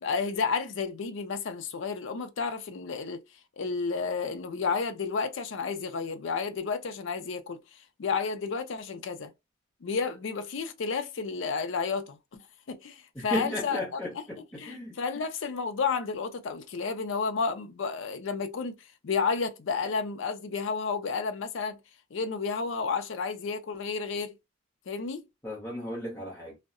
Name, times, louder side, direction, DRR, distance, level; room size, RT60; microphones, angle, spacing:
voice 1, 0.0-3.2 3.6-7.6 8.0-9.3 9.8-12.2 12.7-14.0 14.6-18.7 19.0-21.8 22.1-24.3 24.9-25.2, left 5 dB, 65° left, 0.4 m, -31 dB
voice 2, 13.1-15.0 25.4-26.6, equal, 15° left, 0.7 m, -35 dB
2.7 x 2.1 x 2.4 m
head